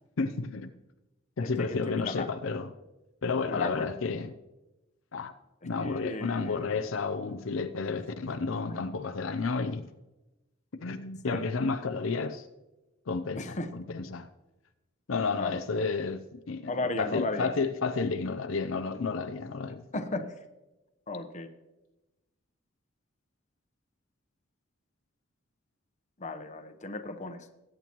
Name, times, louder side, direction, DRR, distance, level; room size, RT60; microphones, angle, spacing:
voice 1, 0.2-0.7 1.4-2.7 3.2-4.3 5.1-5.3 5.6-9.9 10.8-12.5 13.1-14.3 15.1-16.7 17.0-19.9, left 4 dB, 75° left, 0.6 m, -31 dB
voice 2, 1.4-2.3 3.5-3.8 5.8-6.7 8.5-8.8 11.3-11.4 13.3-13.7 15.4-15.9 16.7-17.5 19.9-20.4 21.1-21.5 26.2-27.5, left 2 dB, 35° left, 0.9 m, -35 dB
20.5 x 8.9 x 3.0 m
head